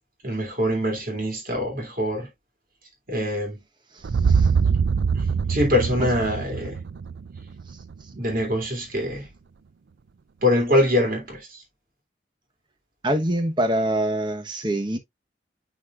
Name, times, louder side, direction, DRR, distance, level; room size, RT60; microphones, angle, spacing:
voice 1, 0.2-2.3 3.1-3.6 5.1-6.8 8.1-9.3 10.4-11.6, left 1 dB, 50° right, 2.5 m, -24 dB
sound 1, 4.0-8.1, right 5 dB, 80° right, 0.4 m, -23 dB
voice 2, 13.0-15.0, right 1 dB, 25° right, 1.1 m, -24 dB
9.7 x 4.1 x 2.4 m
head